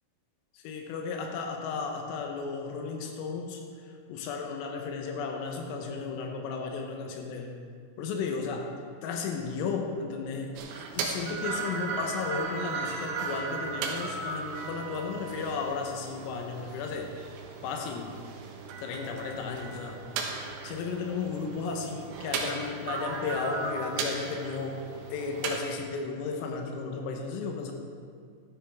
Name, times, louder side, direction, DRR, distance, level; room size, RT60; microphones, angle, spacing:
voice 1, 0.7-7.6 8.0-8.7 9.0-17.1 17.6-18.2 18.8-20.0 20.6-24.9 25.1-27.7, left 5 dB, 85° left, 3 dB, 3.6 m, -34 dB
sound 1, 10.6-25.6, right 4 dB, 80° right, 3.7 m, -36 dB
13.0 x 13.0 x 3.5 m, 2.2 s
omnidirectional pair, 5.9 m